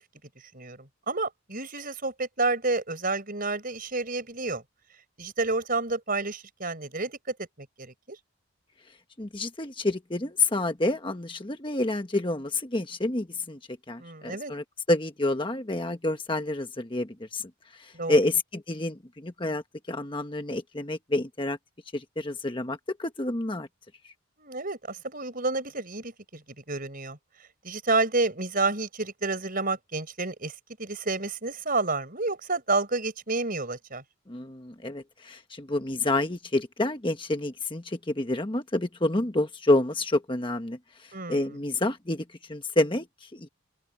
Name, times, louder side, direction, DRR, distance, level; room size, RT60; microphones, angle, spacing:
voice 1, 0.5-4.6 5.2-7.2 7.6-8.2 14.0-14.5 17.9-18.2 24.4-26.4 26.7-27.2 27.6-34.0 41.1-41.6, right 3 dB, 40° right, 5.2 m, -30 dB
voice 2, 9.2-13.6 13.9-19.6 19.9-21.6 21.9-23.7 34.3-43.5, left 2 dB, 25° left, 1.2 m, -28 dB
open air
head